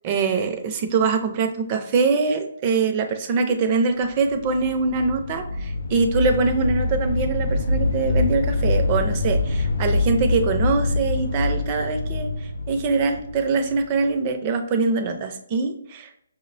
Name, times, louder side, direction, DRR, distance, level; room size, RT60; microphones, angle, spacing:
voice 1, 0.0-16.2, right 4 dB, 30° right, 6 dB, 0.5 m, -23 dB
sound 1, 4.2-14.1, left 2 dB, 80° left, 0.5 m, -25 dB
5.7 x 2.1 x 2.6 m, 0.73 s
hypercardioid pair, 155°, 0 cm